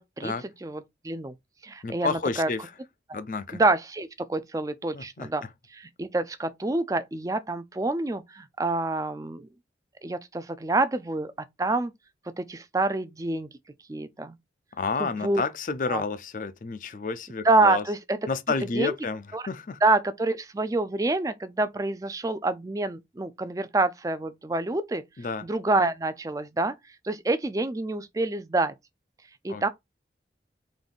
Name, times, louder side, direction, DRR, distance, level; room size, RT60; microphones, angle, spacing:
voice 1, 0.0-0.3 0.6-1.3 1.6-2.5 3.1-3.2 3.5-5.4 5.7-9.5 10.0-11.3 11.6-11.9 12.4-13.5 13.9-14.4 15.0-15.4 15.9-16.0 17.4-18.2 18.7-18.9 19.3-19.4 19.8-25.0 25.4-26.7 27.0-28.7 29.4-29.7, right 2 dB, 20° right, 0.4 m, -27 dB
voice 2, 1.8-2.7 3.1-3.6 4.9-5.3 14.7-17.8 18.3-19.8 25.2-25.4 29.5-29.6, left 4 dB, 45° left, 0.4 m, -30 dB
3.8 x 2.6 x 3.6 m
head